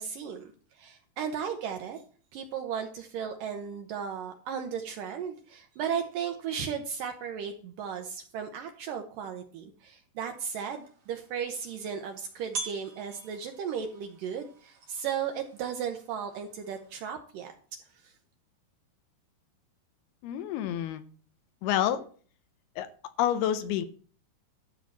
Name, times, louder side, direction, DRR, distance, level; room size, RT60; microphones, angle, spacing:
voice 1, 0.0-2.0 2.3-17.5 18.0-18.1, right 7 dB, 75° right, 5 dB, 2.0 m, -35 dB
sound 1, 10.5-17.1, right 3 dB, 45° right, 3.5 m, -45 dB
voice 2, 20.2-21.0 21.6-22.1 22.8-22.9 23.2-23.9, left 11 dB, 80° left, 11 dB, 2.5 m, -28 dB
12.5 x 4.5 x 7.3 m, 0.44 s
omnidirectional pair, 4.8 m